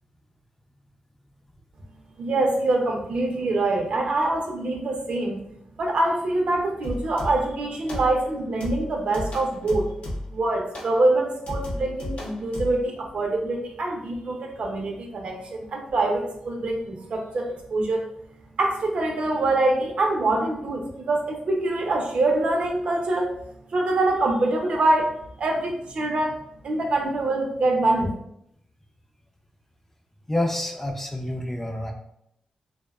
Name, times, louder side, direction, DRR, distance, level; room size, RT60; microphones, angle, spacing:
voice 1, 2.2-5.4 5.8-9.9 10.3-18.0 18.6-23.3 23.7-26.4 26.6-28.1, right 2 dB, 65° right, 1 dB, 0.5 m, -24 dB
sound 1, 6.8-7.6 7.9-8.3 8.6-10.4 10.7-11.0 11.5-12.8, left 1 dB, 75° left, 0.6 m, -33 dB
voice 2, 30.3-31.9, left 1 dB, 15° left, 3 dB, 0.3 m, -28 dB
2.7 x 2.1 x 2.2 m, 0.77 s
cardioid pair, 80°, 2 cm